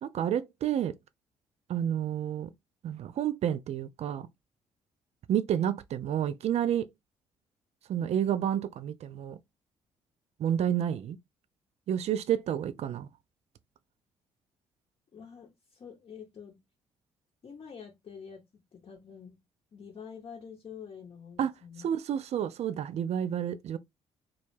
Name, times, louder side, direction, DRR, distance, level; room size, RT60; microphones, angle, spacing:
voice 1, 0.0-0.9 1.7-2.5 2.8-4.3 5.3-6.9 7.9-9.4 10.4-11.2 11.9-13.1 21.4-21.5 21.8-23.8, right 9 dB, 50° right, 0.4 m, -30 dB
voice 2, 15.1-16.6 17.4-18.4 18.7-19.4 19.7-21.9, left 6 dB, 40° left, 0.7 m, -47 dB
2.2 x 2.0 x 3.1 m
hypercardioid pair, 50°, 14 cm